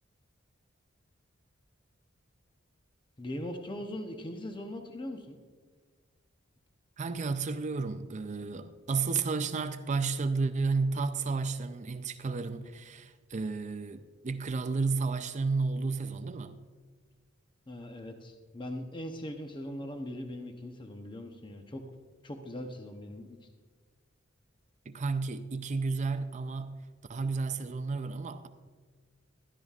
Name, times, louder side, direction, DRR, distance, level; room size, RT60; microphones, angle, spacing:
voice 1, 3.2-5.4 17.7-21.8 22.2-23.4, left 1 dB, 25° left, 0.8 m, -40 dB
voice 2, 7.0-16.6 24.9-26.8 27.1-28.5, right 4 dB, 35° right, 0.5 m, -32 dB
15.5 x 12.5 x 2.4 m
head